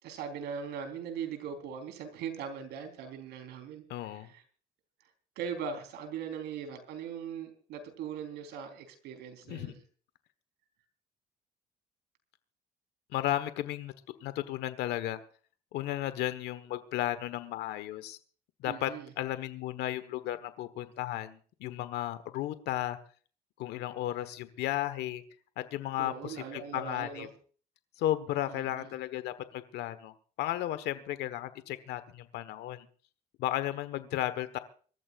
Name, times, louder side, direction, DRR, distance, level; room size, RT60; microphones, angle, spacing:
voice 1, 0.0-4.4 5.4-9.8 18.6-19.1 26.0-27.3 28.5-28.9, right 7 dB, 80° right, 6 dB, 3.9 m, -40 dB
voice 2, 3.9-4.3 9.5-9.7 13.1-13.9 14.2-15.2 15.7-18.2 18.6-23.0 23.6-25.2 25.6-27.3 28.0-32.9 33.4-34.6, left 13 dB, 80° left, 12 dB, 1.3 m, -34 dB
25.0 x 14.0 x 2.5 m, 0.42 s
cardioid pair, 110°, 17 cm